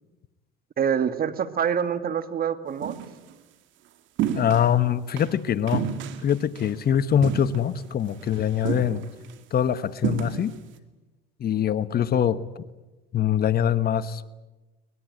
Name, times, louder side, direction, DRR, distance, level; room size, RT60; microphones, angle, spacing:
voice 1, 0.8-3.0, right 8 dB, 45° right, 11 dB, 1.9 m, -26 dB
sound 1, 2.8-3.1 4.2-4.7 5.2-5.3 5.7-6.7 7.2-7.9 8.2-8.3 8.6-9.3 10.0-10.6, right 9 dB, 65° right, 2.3 m, -30 dB
voice 2, 4.3-5.9 6.2-9.0 9.5-10.5 11.4-12.6 13.1-14.3, left 9 dB, 50° left, 14 dB, 1.2 m, -23 dB
24.0 x 20.5 x 9.4 m, 1.1 s
supercardioid pair, 80°, 21 cm